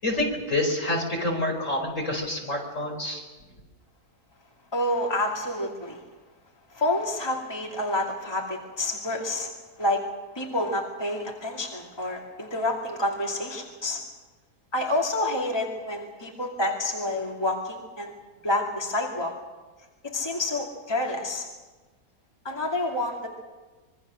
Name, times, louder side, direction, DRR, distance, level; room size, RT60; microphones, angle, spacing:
voice 1, 0.0-3.2, left 1 dB, 50° left, 1 dB, 5.3 m, -27 dB
voice 2, 4.7-6.0 6.7-9.5 9.8-10.0 10.3-14.0 14.7-18.1 18.4-19.3 20.1-21.5 22.4-23.3, left 1 dB, 15° left, -1 dB, 2.5 m, -28 dB
26.0 x 23.0 x 6.4 m, 1.3 s
omnidirectional pair, 1.7 m